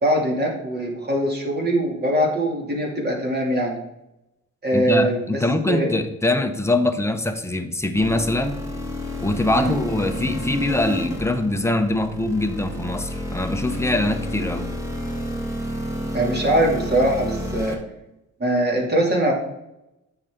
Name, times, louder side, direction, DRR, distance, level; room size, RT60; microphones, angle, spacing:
voice 1, 0.0-3.8 4.6-5.9 9.5-9.8 16.1-17.8 18.4-19.3, right 1 dB, 35° right, -1 dB, 2.7 m, -22 dB
voice 2, 4.7-8.6 9.2-14.7, left 2 dB, 10° left, 7 dB, 0.9 m, -23 dB
sound 1, 8.0-17.7, equal, 10° right, 2.0 m, -30 dB
9.1 x 6.6 x 3.8 m, 0.88 s
cardioid pair, 90°, 30 cm